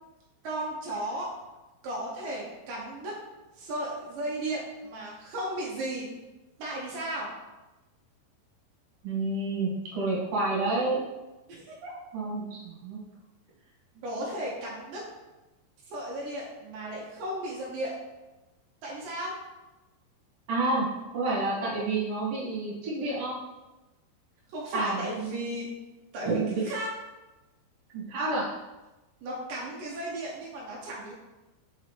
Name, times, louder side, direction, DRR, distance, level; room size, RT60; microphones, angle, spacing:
voice 1, 0.4-1.3 1.8-3.1 3.6-6.1 6.6-7.3 11.5-11.9 14.0-15.0 15.9-17.9 18.8-19.3 24.5-25.7 26.1-26.9 29.2-31.1, right 1 dB, 90° right, -4 dB, 1.9 m, -35 dB
voice 2, 9.0-11.0 12.1-13.0 20.5-20.9 21.1-23.3 24.7-25.1 26.2-26.7 27.9-28.5, right 2 dB, 50° right, -7 dB, 2.1 m, -29 dB
5.5 x 5.2 x 3.3 m, 1.1 s
omnidirectional pair, 5.3 m